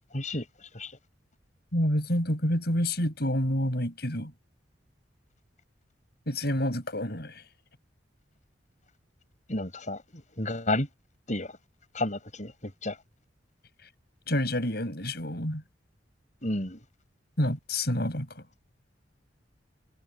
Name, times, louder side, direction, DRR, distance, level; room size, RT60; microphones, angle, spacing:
voice 1, 0.1-1.0 9.5-10.9 11.3-11.5 11.9-13.0 16.4-16.8, left 1 dB, 40° left, 7.3 m, -32 dB
voice 2, 1.7-4.3 6.3-7.4 14.3-15.6 17.4-18.4, left 1 dB, 60° left, 7.6 m, -28 dB
head